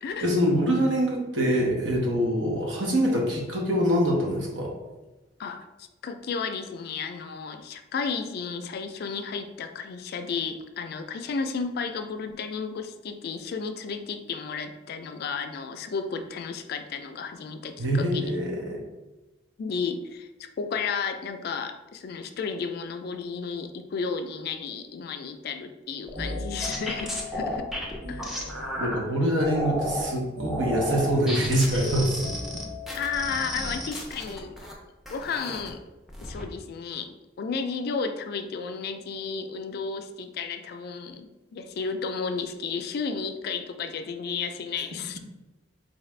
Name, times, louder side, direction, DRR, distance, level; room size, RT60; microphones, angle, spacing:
voice 1, 0.2-4.7 17.8-18.8 28.8-32.2, equal, 85° right, -2 dB, 1.0 m, -24 dB
voice 2, 5.4-18.3 19.6-27.7 28.1-28.4 32.9-34.6 35.1-35.8 36.2-45.2, left 5 dB, 55° left, 8 dB, 0.3 m, -33 dB
sound 1, 26.1-29.0 29.4-30.1 30.5-34.7 35.0-35.7 36.1-36.4, equal, ahead, 0.5 m, -33 dB
sound 2, 26.2-29.1 30.4-33.7, left 2 dB, 40° right, 0.9 m, -39 dB
4.0 x 2.4 x 3.2 m, 1.1 s
head